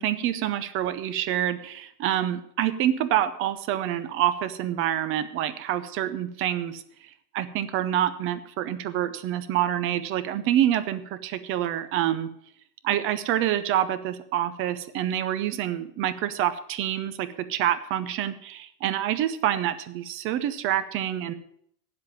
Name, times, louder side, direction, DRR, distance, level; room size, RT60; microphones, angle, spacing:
voice 1, 0.0-6.8 7.3-12.3 12.8-21.3, right 11 dB, 30° right, 13 dB, 0.7 m, -27 dB
8.9 x 7.9 x 8.6 m, 0.67 s
supercardioid pair, 160°, 44 cm